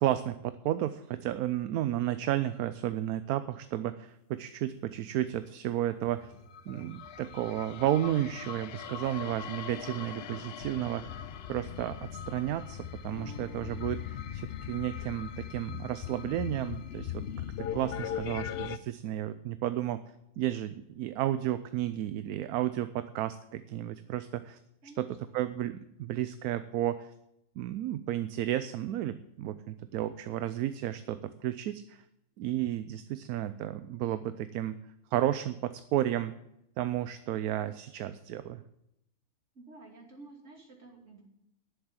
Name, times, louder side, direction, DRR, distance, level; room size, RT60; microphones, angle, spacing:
voice 1, 0.0-6.3 6.7-11.1 11.5-17.2 17.6-20.0 20.4-24.6 25.0-25.1 25.3-27.1 27.6-32.0 32.4-34.8 35.1-36.3 36.8-38.6, right 12 dB, 70° right, 13 dB, 1.0 m, -32 dB
sound 1, 6.1-14.0, equal, 30° left, 5.2 m, -55 dB
sound 2, 6.5-18.8, left 9 dB, 70° left, 0.6 m, -40 dB
sound 3, 13.0-18.6, left 3 dB, ahead, 5.4 m, -55 dB
voice 2, 24.8-25.4 39.5-41.2, right 3 dB, 50° right, 0 dB, 3.1 m, -51 dB
11.5 x 7.0 x 8.9 m, 0.82 s
omnidirectional pair, 1.7 m